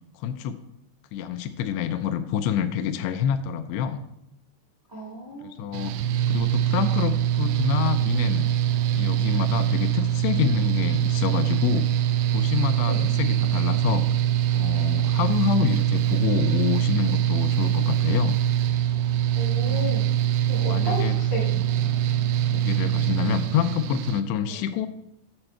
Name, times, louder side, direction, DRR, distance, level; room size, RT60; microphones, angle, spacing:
voice 1, 0.2-0.6 1.1-4.0 5.4-6.0 6.3-8.4 8.9-11.9 12.3-14.1 14.5-18.4 19.7-19.9 20.7-21.1 22.5-24.9, left 9 dB, 85° left, 9 dB, 2.6 m, -27 dB
voice 2, 4.9-5.7 12.8-13.0 19.3-20.0 20.5-21.9 24.4-24.6, left 2 dB, 25° right, -4 dB, 1.0 m, -34 dB
Mechanical fan, 5.7-24.2, right 11 dB, 90° right, 2.8 m, -23 dB
7.8 x 6.9 x 4.4 m, 0.79 s
omnidirectional pair, 4.9 m